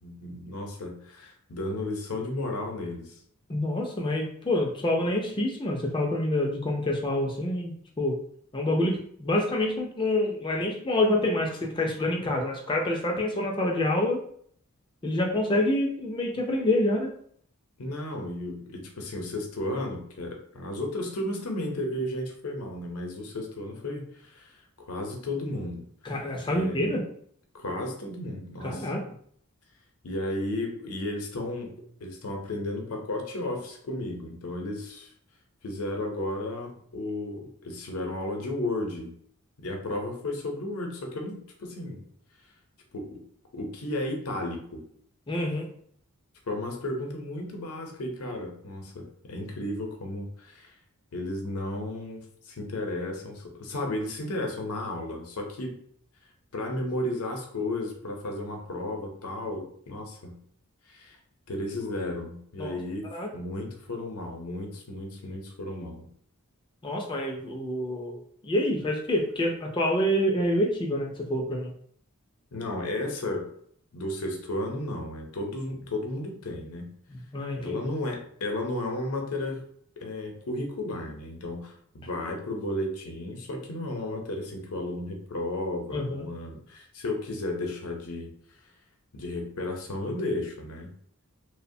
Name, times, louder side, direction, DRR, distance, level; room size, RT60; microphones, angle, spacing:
voice 1, 0.0-3.2 17.8-25.8 26.5-26.9 27.5-28.9 30.0-35.1 35.6-39.1 39.6-42.0 42.9-43.2 43.5-44.8 46.5-50.7 51.1-55.8 56.5-60.4 60.9-61.2 61.5-63.1 63.3-66.1 72.5-73.5 73.9-76.9 77.6-79.6 80.0-88.3 89.1-90.9, left 1 dB, 80° left, 2 dB, 0.6 m, -33 dB
voice 2, 3.5-8.2 8.5-14.2 15.0-17.1 26.0-27.0 28.6-29.0 45.3-45.7 62.6-62.8 63.1-63.3 66.8-71.7 77.3-77.8 85.9-86.3, left 1 dB, 20° left, 0 dB, 0.3 m, -27 dB
2.8 x 2.0 x 2.6 m, 0.62 s
head